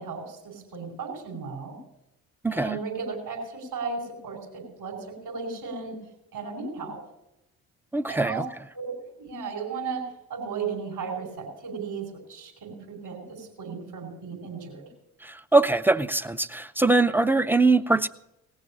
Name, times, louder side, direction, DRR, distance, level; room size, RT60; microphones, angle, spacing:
voice 1, 0.0-1.8 2.5-6.0 6.3-7.0 8.1-8.4 8.7-10.0 10.3-14.9, right 5 dB, 65° right, 2 dB, 4.9 m, -35 dB
voice 2, 2.4-2.8 7.9-8.4 15.2-18.1, right 3 dB, 5° right, 14 dB, 0.5 m, -22 dB
18.0 x 6.6 x 7.2 m, 0.89 s
hypercardioid pair, 45°, 42 cm